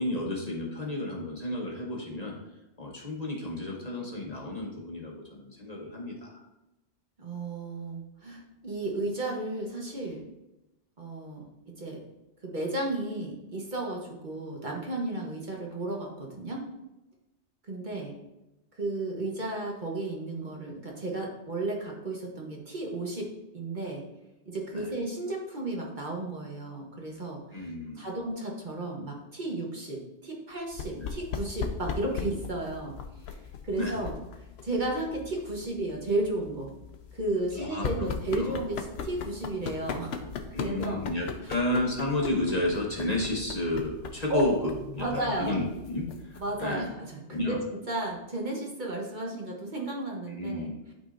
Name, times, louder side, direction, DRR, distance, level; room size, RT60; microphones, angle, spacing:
voice 1, 0.0-2.3 2.8-6.4 24.7-24.9 27.5-28.1 30.9-31.1 33.7-34.0 37.6-38.6 40.5-44.7 45.0-46.9 47.3-47.6 50.3-50.8, left 1 dB, 35° left, -2 dB, 1.1 m, -32 dB
voice 2, 7.2-10.2 11.0-12.0 12.4-16.6 17.7-18.2 18.7-24.0 24.4-27.7 27.9-32.9 33.3-34.1 34.6-36.7 37.1-40.3 40.6-41.0 41.4-41.5 44.3-44.5 45.0-45.6 46.4-50.9, right 2 dB, 45° right, -1 dB, 1.1 m, -33 dB
sound 1, 30.7-46.9, left 6 dB, 65° left, 0.8 m, -39 dB
11.5 x 4.0 x 2.5 m, 0.95 s
omnidirectional pair, 1.2 m